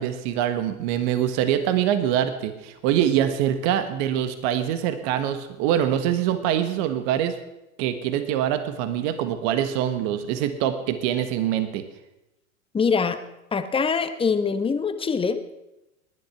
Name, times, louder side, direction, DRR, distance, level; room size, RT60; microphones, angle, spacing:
voice 1, 0.0-7.4 7.8-11.8, right 10 dB, 50° right, 10 dB, 1.5 m, -24 dB
voice 2, 12.7-13.2 13.5-15.5, left 5 dB, 15° left, 10 dB, 1.1 m, -24 dB
19.0 x 11.0 x 5.9 m, 0.95 s
hypercardioid pair, 105°, 42 cm